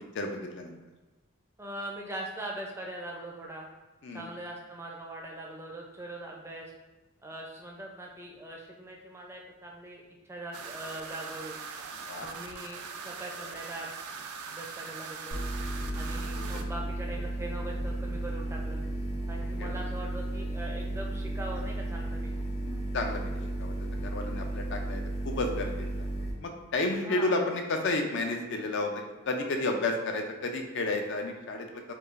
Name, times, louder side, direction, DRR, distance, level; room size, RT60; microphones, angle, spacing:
voice 1, 0.1-0.8 4.0-4.3 12.0-12.3 16.3-16.5 19.6-19.8 22.6-23.2 23.6-23.7 24.0-26.1 26.4-28.9 29.3-31.8, left 2 dB, 55° left, 4 dB, 0.4 m, -31 dB
voice 2, 1.6-3.7 4.1-6.7 7.2-11.6 12.2-13.9 14.5-15.4 15.9-18.8 19.3-22.4 27.0-27.4, right 1 dB, 10° right, -1 dB, 0.4 m, -41 dB
sound 1, 10.5-16.6, right 5 dB, 85° right, 0.4 m, -41 dB
sound 2, 15.3-26.3, right 1 dB, 85° left, 1.3 m, -34 dB
4.6 x 2.3 x 2.4 m, 1.2 s
head